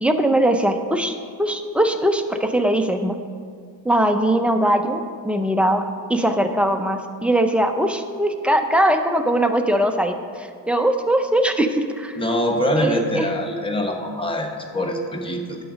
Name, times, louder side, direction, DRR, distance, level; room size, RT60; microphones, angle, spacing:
voice 1, 0.0-3.2 3.8-12.2 12.8-13.3, right 1 dB, 5° right, 5 dB, 0.5 m, -21 dB
voice 2, 12.2-15.6, equal, 15° left, 2 dB, 1.0 m, -24 dB
11.0 x 4.0 x 6.1 m, 2.1 s
cardioid pair, 105°, 40 cm